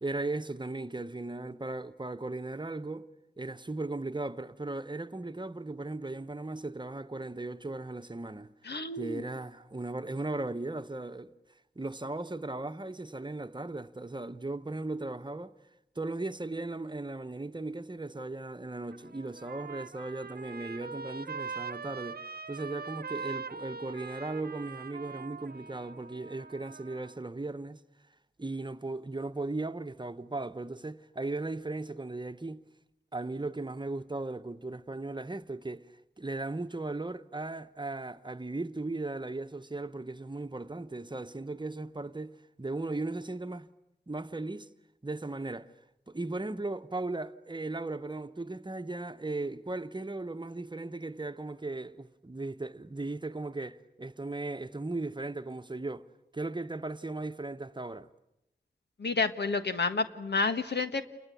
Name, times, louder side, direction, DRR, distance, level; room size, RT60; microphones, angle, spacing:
voice 1, 0.0-3.1 3.4-8.5 9.0-11.3 11.8-15.5 16.0-22.2 22.5-27.8 28.4-32.6 33.1-35.9 36.2-43.7 44.1-44.7 45.0-45.7 46.1-56.1 56.3-58.1, right 2 dB, 25° right, 1.0 m, -37 dB
voice 2, 8.6-9.2 59.0-61.0, left 4 dB, 90° left, 1.5 m, -30 dB
Trumpet, 18.7-27.2, right 5 dB, 65° right, 1.0 m, -42 dB
29.0 x 22.0 x 8.4 m
wide cardioid pair, 65°, 17 cm